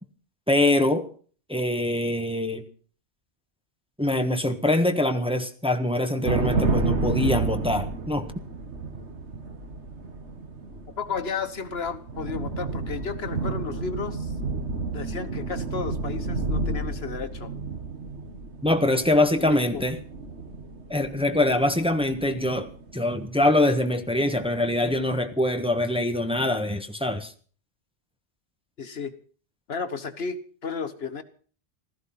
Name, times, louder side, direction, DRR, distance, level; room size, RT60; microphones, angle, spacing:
voice 1, 0.5-1.1 1.5-2.6 4.0-8.3 18.6-20.0 20.9-27.3, left 1 dB, 5° right, 1.4 m, -24 dB
sound 1, 6.3-23.9 24.2-25.0, right 3 dB, 80° right, 1.9 m, -31 dB
voice 2, 11.0-14.3 14.9-17.5 19.4-19.8 28.8-29.1 29.7-31.2, left 5 dB, 65° left, 1.4 m, -33 dB
16.0 x 14.0 x 5.8 m
omnidirectional pair, 1.1 m